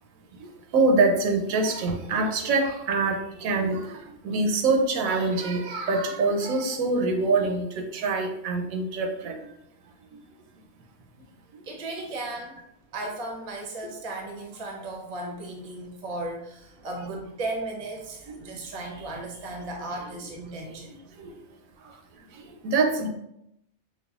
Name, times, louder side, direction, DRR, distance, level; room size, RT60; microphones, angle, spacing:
voice 1, 0.7-4.0 4.2-9.3 18.3-18.4 21.2-21.3 22.6-23.1, right 3 dB, 85° right, 3 dB, 1.0 m, -24 dB
voice 2, 11.6-12.6 12.9-21.0, right 2 dB, 40° right, 1 dB, 0.6 m, -36 dB
5.3 x 2.2 x 2.4 m, 0.80 s
omnidirectional pair, 1.4 m